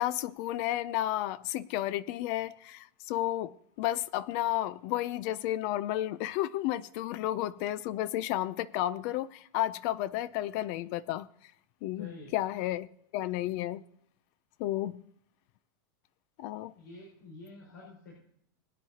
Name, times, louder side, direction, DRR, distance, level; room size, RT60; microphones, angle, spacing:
voice 1, 0.0-11.3 11.8-12.9 13.1-13.8 14.6-15.0 16.4-16.7, left 14 dB, 50° left, 0.5 m, -32 dB
voice 2, 12.0-12.4 16.7-18.2, left 3 dB, 90° left, 5.2 m, -48 dB
22.5 x 9.0 x 2.8 m
supercardioid pair, 135°, 12 cm